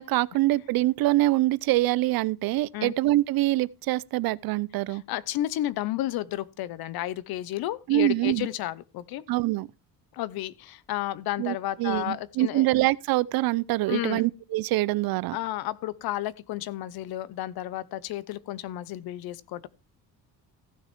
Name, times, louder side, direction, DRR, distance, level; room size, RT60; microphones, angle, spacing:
voice 1, 0.0-5.0 7.9-8.5 9.3-9.7 11.4-15.4, right 17 dB, 75° right, 0.6 m, -25 dB
voice 2, 4.9-9.2 10.1-12.7 13.9-14.2 15.3-19.7, left 14 dB, 80° left, 0.8 m, -32 dB
15.0 x 6.5 x 4.5 m
cardioid pair, 125°, 36 cm